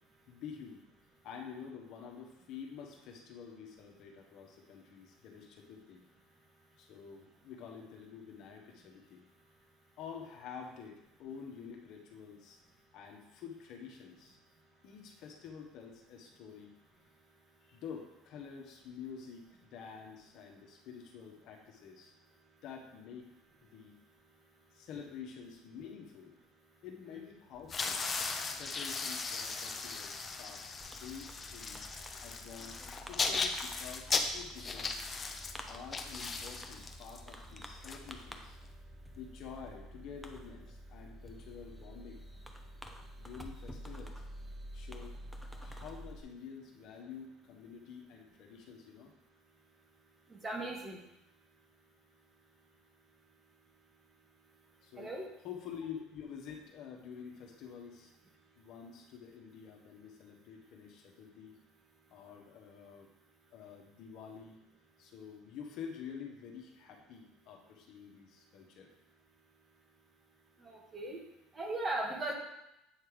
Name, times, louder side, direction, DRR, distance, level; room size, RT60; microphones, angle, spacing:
voice 1, 0.3-0.8 1.2-6.0 6.8-9.2 10.0-12.6 12.9-14.4 14.8-16.7 17.7-19.4 19.7-22.1 22.6-23.4 23.6-24.0 24.7-26.3 26.8-28.1 28.6-31.8 32.2-35.0 35.7-38.6 39.1-42.2 43.2-44.1 44.7-45.2 45.6-49.1 54.8-55.1 55.4-58.1 58.6-61.6 62.1-63.1 63.5-64.6 65.0-68.9, left 7 dB, 65° left, 1 dB, 1.2 m, -48 dB
sound 1, 27.6-38.6, left 4 dB, 30° left, 0.7 m, -37 dB
Fireworks, 30.8-46.2, equal, 5° right, 0.7 m, -49 dB
voice 2, 50.3-51.0 55.0-55.3 70.6-71.2 71.5-72.3, right 2 dB, 25° right, 1 dB, 1.5 m, -37 dB
8.4 x 3.3 x 5.0 m, 0.87 s
supercardioid pair, 90°, 0 cm